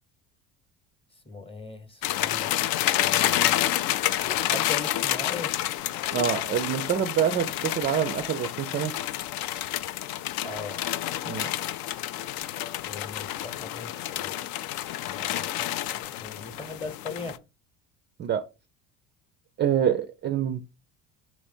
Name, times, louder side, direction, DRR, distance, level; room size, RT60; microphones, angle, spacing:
voice 1, 1.2-2.5 3.0-3.6 4.2-5.5 10.4-10.9 12.9-14.7 15.0-15.7 16.0-17.4, left 3 dB, 10° left, 0.9 m, -39 dB
sound 1, 2.0-17.4, left 13 dB, 55° left, 0.4 m, -29 dB
voice 2, 6.1-8.9 11.2-11.5 18.2-18.4 19.6-20.6, right 9 dB, 25° right, 0.4 m, -26 dB
3.3 x 2.9 x 4.3 m
hypercardioid pair, 70°, 45 cm